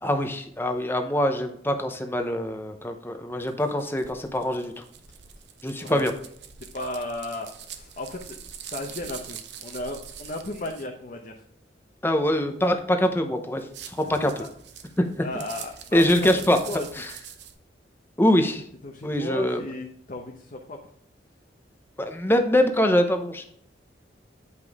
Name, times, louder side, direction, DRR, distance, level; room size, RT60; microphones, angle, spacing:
voice 1, 0.0-4.8 5.6-6.1 12.0-14.5 15.0-15.3 15.9-16.6 16.9-17.1 18.2-18.7 19.0-19.6 22.0-23.5, left 1 dB, 10° left, 5 dB, 0.7 m, -24 dB
sound 1, 3.4-10.9 13.5-17.5, right 8 dB, 70° right, 0.7 m, -43 dB
voice 2, 6.7-8.4 8.7-11.4 14.0-14.3 15.2-16.0 16.7-16.9 18.8-20.8, left 1 dB, 45° left, 1 dB, 0.8 m, -35 dB
8.1 x 5.3 x 3.5 m, 0.67 s
head